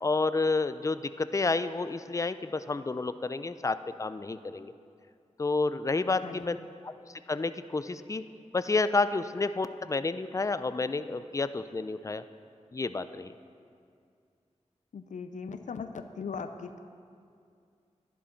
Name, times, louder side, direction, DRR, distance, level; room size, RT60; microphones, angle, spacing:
voice 1, 0.0-4.7 5.4-6.6 6.8-6.9 7.3-8.2 8.5-12.2 12.7-13.3, left 3 dB, 25° left, 12 dB, 0.4 m, -30 dB
voice 2, 14.9-16.7, left 5 dB, 85° left, 8 dB, 0.5 m, -38 dB
11.0 x 10.5 x 4.4 m, 2.3 s
cardioid pair, 50°, 12 cm